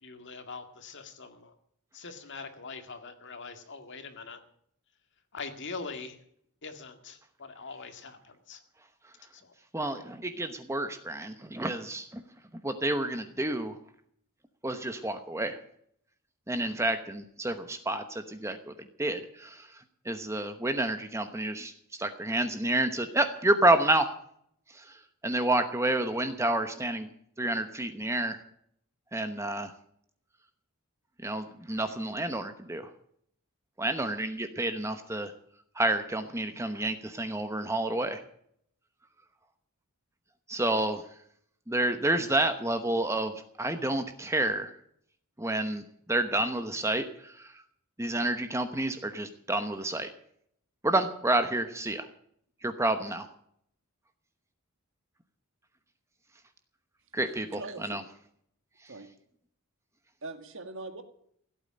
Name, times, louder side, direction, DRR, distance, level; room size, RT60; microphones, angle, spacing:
voice 1, 0.0-1.5 1.9-4.4 5.3-6.2 6.6-8.6 9.3-9.5, left 4 dB, 55° left, 7 dB, 2.0 m, -43 dB
voice 2, 9.7-12.2 12.6-13.8 14.6-15.6 16.5-18.7 19.0-24.1 24.7-27.1 27.4-28.4 29.1-29.7 31.2-32.9 33.8-35.3 35.7-38.2 40.5-41.0 41.7-44.7 45.4-47.6 48.0-50.1 50.8-52.1 52.6-53.3 57.1-58.0, right 1 dB, 15° right, 8 dB, 1.0 m, -29 dB
voice 3, 57.5-58.0 58.9-59.1 60.2-61.0, right 3 dB, 60° right, 8 dB, 1.8 m, -41 dB
16.0 x 8.8 x 8.6 m, 0.68 s
head